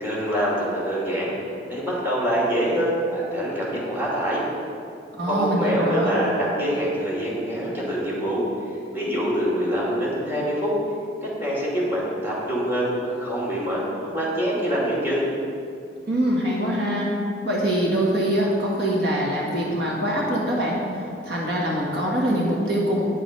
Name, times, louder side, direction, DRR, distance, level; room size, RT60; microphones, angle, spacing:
voice 1, 0.0-1.3 1.7-4.4 5.3-8.5 8.9-10.8 11.4-13.8 14.1-15.3, equal, 10° right, -6 dB, 2.6 m, -25 dB
voice 2, 5.2-6.1 16.1-17.1 17.4-23.0, equal, 65° right, -3 dB, 1.8 m, -24 dB
9.6 x 7.6 x 5.3 m, 2.4 s
head